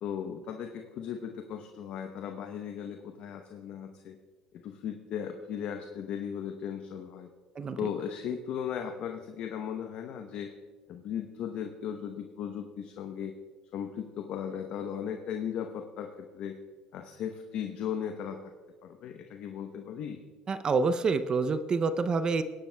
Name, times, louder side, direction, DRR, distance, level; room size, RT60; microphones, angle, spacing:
voice 1, 0.0-4.2 4.5-7.3 7.8-10.5 10.9-13.4 13.7-16.6 16.9-18.4 18.8-20.2, left 8 dB, 65° left, 5 dB, 0.8 m, -37 dB
voice 2, 20.5-22.4, right 4 dB, 35° right, 12 dB, 0.5 m, -27 dB
19.5 x 10.5 x 2.2 m, 1.4 s
supercardioid pair, 85°, 2 cm